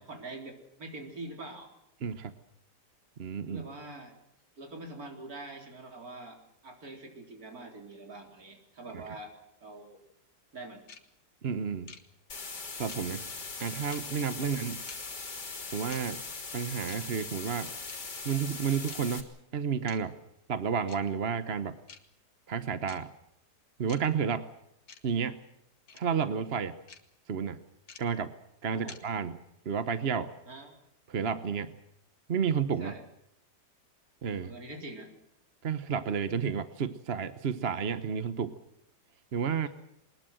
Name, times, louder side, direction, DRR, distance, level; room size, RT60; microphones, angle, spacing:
voice 1, 0.0-1.7 3.5-4.2 4.6-9.3 9.6-10.0 10.5-10.8 14.4-14.6 28.7-29.0 30.5-30.8 32.8-33.0 34.4-35.1, right 2 dB, 60° right, 3 dB, 4.3 m, -44 dB
voice 2, 2.0-2.3 3.2-3.6 11.4-11.9 12.8-13.2 13.6-14.8 15.7-16.2 16.5-17.7 18.2-19.2 19.5-20.2 20.5-21.8 22.5-23.1 23.8-24.5 25.0-25.4 25.9-26.8 27.3-27.6 28.0-28.3 28.6-29.4 29.6-30.3 31.1-31.8 32.3-32.9 34.2-34.5 35.6-38.5 39.3-39.7, right 6 dB, 45° right, 12 dB, 1.1 m, -31 dB
sound 1, 10.9-11.0 11.9-12.0 12.9-13.0 13.9-14.0 14.9-15.0 15.9-16.0 16.9-17.0 17.9-18.0 18.9-19.0 19.9-20.0 20.9-21.0 21.9-22.0 22.9-23.0 23.9-24.0 24.9-25.0 25.9-26.0 26.9-27.0 27.9-28.0 28.9-29.0, left 5 dB, 65° left, 2.2 m, -47 dB
sound 2, 12.3-19.2, left 4 dB, 80° left, 3.6 m, -40 dB
22.5 x 20.5 x 7.8 m, 0.77 s
omnidirectional pair, 1.8 m